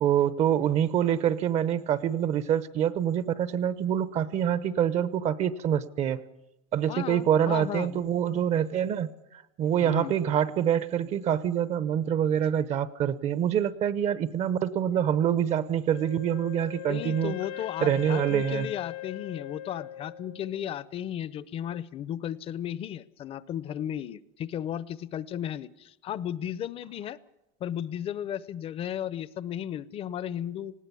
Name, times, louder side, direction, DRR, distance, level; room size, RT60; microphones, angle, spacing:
voice 1, 0.0-6.2 6.7-17.3 17.8-18.7, right 9 dB, 40° right, 17 dB, 0.9 m, -26 dB
voice 2, 6.9-8.0 9.8-10.1 16.9-27.2 27.6-30.7, left 10 dB, 35° left, 19 dB, 0.7 m, -34 dB
Wind instrument woodwind instrument, 15.9-20.8, left 14 dB, 75° left, 1.6 m, -40 dB
19.5 x 16.5 x 8.5 m, 0.89 s
cardioid pair, 145°, 16 cm